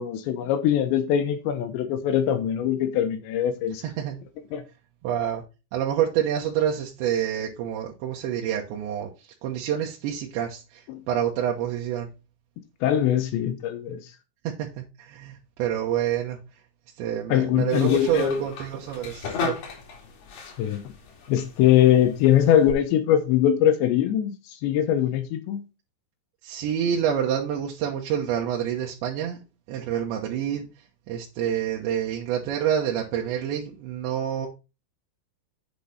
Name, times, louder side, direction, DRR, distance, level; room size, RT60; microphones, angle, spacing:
voice 1, 0.0-3.8 4.5-4.6 10.9-11.0 12.8-14.0 17.3-18.4 20.6-20.8 21.3-25.6, left 10 dB, 80° left, 3.3 m, -22 dB
voice 2, 3.8-4.2 5.0-5.4 5.7-12.1 14.5-16.4 17.0-19.5 26.4-29.4 29.7-30.7 31.1-34.5, right 9 dB, 80° right, 3.4 m, -27 dB
Tap unscrew old fire ext, 17.7-22.7, left 5 dB, 65° left, 4.4 m, -36 dB
8.4 x 7.2 x 4.1 m
omnidirectional pair, 5.1 m